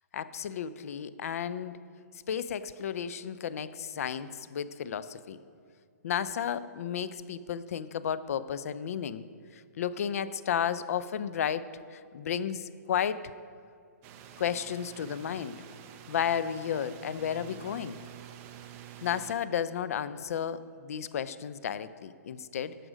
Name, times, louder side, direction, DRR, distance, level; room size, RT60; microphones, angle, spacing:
voice 1, 0.1-1.8 2.3-5.4 6.0-9.2 9.5-13.3 14.4-15.6 16.1-18.0 19.0-22.8, left 8 dB, 60° left, 15 dB, 0.5 m, -33 dB
sound 1, 14.0-19.3, right 10 dB, 25° right, 0.6 m, -48 dB
11.5 x 7.6 x 5.0 m, 2.3 s
hypercardioid pair, 155°, 9 cm